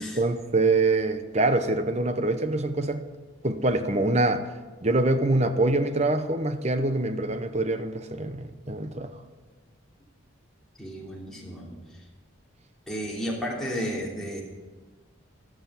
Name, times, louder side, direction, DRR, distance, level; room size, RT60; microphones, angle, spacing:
voice 1, 0.0-3.0 3.4-4.5 4.8-9.1, right 2 dB, 30° right, 0.8 m, -25 dB
voice 2, 10.8-12.0 12.9-14.4, equal, 5° left, 3.2 m, -33 dB
13.5 x 13.5 x 5.7 m
head